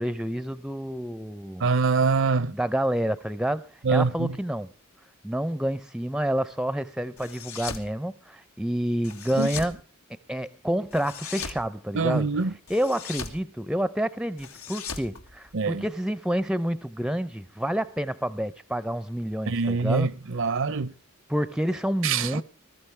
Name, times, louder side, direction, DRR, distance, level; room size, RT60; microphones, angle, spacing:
voice 1, 0.0-1.7 2.5-4.7 5.2-9.8 10.1-12.3 12.7-20.1 20.5-20.6 21.3-22.4, right 1 dB, 5° right, 0.6 m, -28 dB
voice 2, 1.6-2.5 3.8-4.3 9.4-9.5 11.9-12.5 15.5-15.8 19.5-20.9 22.0-22.4, right 4 dB, 60° right, 0.7 m, -24 dB
sound 1, 7.2-7.9 9.0-9.8 10.9-11.6 12.7-13.4 14.4-15.9, left 6 dB, 85° left, 1.9 m, -38 dB
20.0 x 14.0 x 3.3 m
head